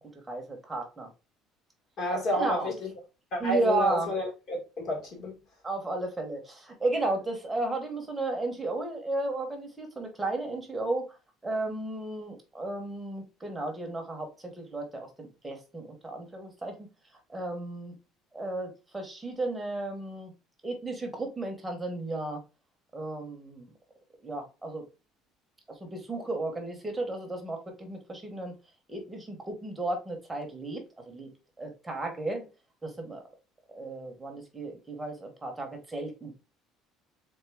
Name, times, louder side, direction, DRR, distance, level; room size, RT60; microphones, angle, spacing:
voice 1, 0.3-1.1 2.3-2.7 3.4-4.1 5.6-11.1 11.4-16.8 17.3-17.9 18.3-20.3 20.6-22.4 22.9-23.7 24.2-24.8 25.7-28.5 28.9-31.3 31.6-32.5 32.8-33.2 33.7-36.3, right 2 dB, 10° right, 1.0 m, -34 dB
voice 2, 2.0-2.9 3.3-5.4, left 1 dB, 45° left, 2.0 m, -30 dB
3.7 x 3.6 x 3.5 m
cardioid pair, 175°, 0 cm